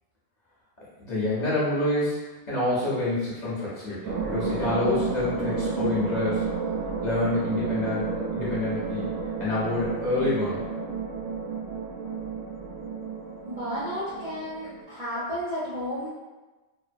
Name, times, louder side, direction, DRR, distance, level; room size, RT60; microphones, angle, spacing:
voice 1, 1.0-6.5 7.0-10.7, left 2 dB, 40° left, -9 dB, 0.7 m, -27 dB
sound 1, 4.0-14.8, right 4 dB, 70° right, 0.9 m, -31 dB
voice 2, 13.4-16.1, equal, 50° right, -10 dB, 0.5 m, -32 dB
2.7 x 2.1 x 2.5 m, 1.2 s
omnidirectional pair, 1.3 m